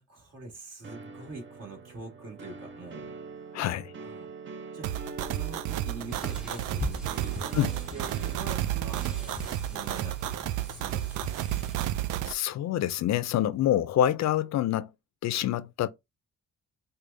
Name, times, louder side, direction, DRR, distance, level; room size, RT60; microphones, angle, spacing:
voice 1, 0.0-3.1 4.0-4.3 4.7-4.9 5.3-9.4 9.7-10.4 10.6-11.4, right 3 dB, 55° right, 2.0 m, -44 dB
sound 1, 0.8-9.1, right 4 dB, 40° right, 0.6 m, -44 dB
voice 2, 3.5-3.9 7.5-7.7 12.3-14.9 15.2-15.9, left 11 dB, 65° left, 0.5 m, -26 dB
sound 2, 4.8-12.3, right 13 dB, 85° right, 0.5 m, -32 dB
sound 3, 6.1-11.8, left 1 dB, ahead, 0.9 m, -41 dB
4.8 x 2.3 x 2.6 m
cardioid pair, 90°, 30 cm